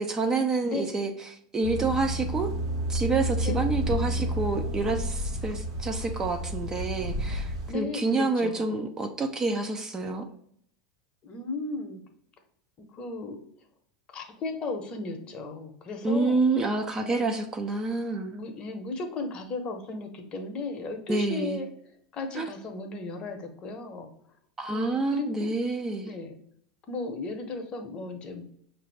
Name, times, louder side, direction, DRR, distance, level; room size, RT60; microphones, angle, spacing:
voice 1, 0.0-2.5 2.9-10.3 16.0-18.3 21.1-21.6 22.3-22.5 24.6-26.1, right 3 dB, 20° right, 5 dB, 0.5 m, -28 dB
sound 1, 1.6-7.7, right 1 dB, 75° right, 1.0 m, -30 dB
voice 2, 7.7-8.8 11.2-12.0 12.9-13.4 14.1-16.4 17.0-17.3 18.3-21.7 22.1-24.1 24.7-25.5 26.0-26.4 26.9-28.4, left 3 dB, 35° left, 5 dB, 0.8 m, -35 dB
5.5 x 2.6 x 3.3 m, 0.66 s
hypercardioid pair, 100°, 3 cm